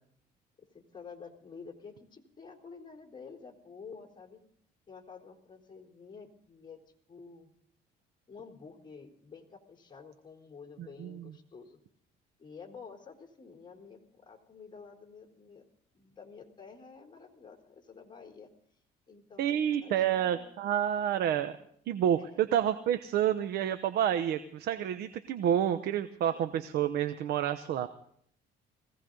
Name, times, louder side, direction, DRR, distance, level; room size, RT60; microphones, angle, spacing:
voice 1, 0.6-4.4 4.9-6.8 7.1-7.5 8.3-11.8 12.4-15.6 15.9-18.5 19.1-20.6 21.0-21.1 22.2-22.5 26.2-26.4, left 5 dB, 25° left, 2 dB, 3.6 m, -50 dB
voice 2, 19.4-21.5 21.9-27.9, right 10 dB, 70° right, 10 dB, 1.0 m, -29 dB
21.0 x 16.5 x 3.9 m, 0.64 s
cardioid pair, 110°, 17 cm